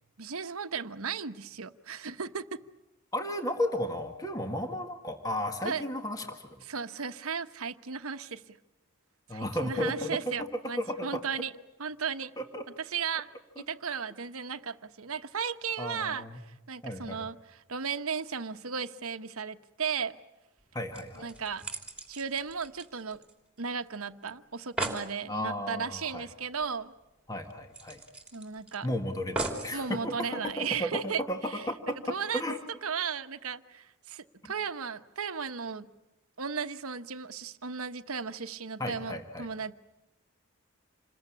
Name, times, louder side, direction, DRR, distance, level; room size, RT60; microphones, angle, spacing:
voice 1, 0.2-2.6 5.6-5.8 6.7-8.6 9.3-11.5 11.8-12.3 12.8-13.3 13.6-16.3 16.7-20.2 21.2-21.6 22.1-23.2 23.6-26.9 28.3-28.9 29.7-31.6 32.1-32.4 32.8-35.9 36.4-39.7, right 6 dB, 75° right, 1.1 m, -35 dB
voice 2, 3.1-6.6 9.3-10.2 10.8-11.2 12.4-12.7 13.6-13.7 15.8-16.4 16.8-17.2 20.7-21.3 25.3-26.3 27.3-28.0 28.8-32.6 34.4-34.5 38.8-39.5, left 1 dB, 15° left, 1.8 m, -34 dB
sound 1, 20.6-20.7 20.9-23.6 23.9-24.0 24.3-24.4 24.6-25.1 26.6-26.7 27.0-27.1 27.7-28.7 29.3-29.8 30.5-30.6, right 2 dB, 5° right, 3.1 m, -37 dB
27.5 x 21.5 x 8.5 m
head